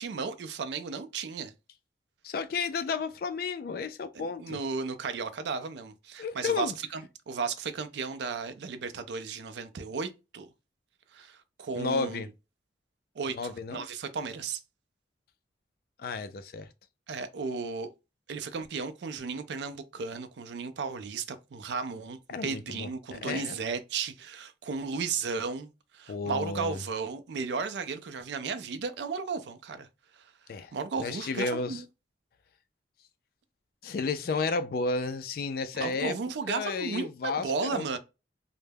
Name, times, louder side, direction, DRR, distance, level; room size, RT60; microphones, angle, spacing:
voice 1, 0.0-1.5 4.1-10.5 11.1-12.2 13.2-14.6 17.1-17.9 18.3-29.9 30.2-30.3 30.7-31.8 35.7-38.0, right 5 dB, 70° right, 0.4 m, -34 dB
voice 2, 2.2-4.6 6.2-6.7 11.8-12.3 13.3-13.9 16.0-16.7 22.3-22.9 23.2-23.6 26.1-26.8 30.5-30.7 31.0-31.8 33.8-36.2 36.5-37.8, left 4 dB, 50° left, 0.3 m, -32 dB
2.2 x 2.0 x 3.3 m
head